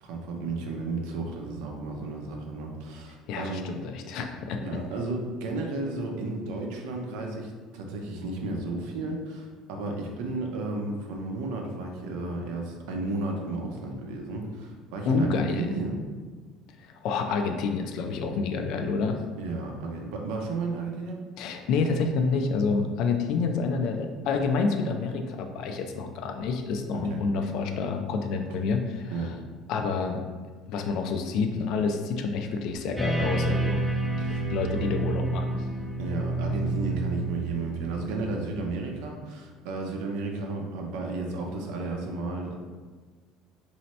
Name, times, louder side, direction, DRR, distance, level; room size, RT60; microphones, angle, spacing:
voice 1, 0.0-3.7 4.6-16.0 19.4-21.2 27.1-27.2 29.1-29.3 34.2-34.4 34.7-34.8 36.0-42.5, right 2 dB, 85° right, 1 dB, 0.7 m, -33 dB
voice 2, 3.3-4.6 15.1-15.7 16.8-19.2 21.4-29.3 29.7-30.2 30.7-33.8 34.5-35.6, left 4 dB, 65° left, 5 dB, 0.4 m, -28 dB
sound 1, 33.0-38.6, right 2 dB, 5° right, 0.4 m, -29 dB
3.1 x 2.8 x 4.2 m, 1.4 s
cardioid pair, 145°, 0 cm